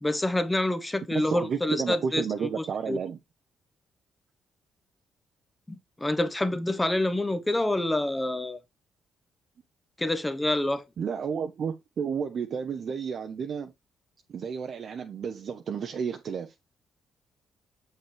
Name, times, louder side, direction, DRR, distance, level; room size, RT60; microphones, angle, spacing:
voice 1, 0.0-2.2 2.6-3.0 5.7-8.6 10.0-10.8, left 1 dB, 15° left, 0.9 m, -27 dB
voice 2, 1.1-3.2 11.0-13.7 14.3-16.5, right 6 dB, 55° right, 0.8 m, -31 dB
7.2 x 5.5 x 3.3 m
cardioid pair, 90°, 0 cm